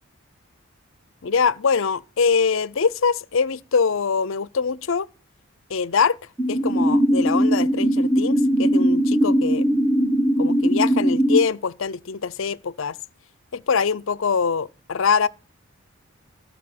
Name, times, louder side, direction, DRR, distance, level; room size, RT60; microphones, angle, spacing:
voice 1, 1.2-5.1 5.7-6.2 6.5-9.6 10.4-13.0 13.5-15.3, left 5 dB, 65° left, 0.5 m, -23 dB
sound 1, 6.4-11.4, equal, 5° right, 1.3 m, -20 dB
14.5 x 6.7 x 6.0 m
head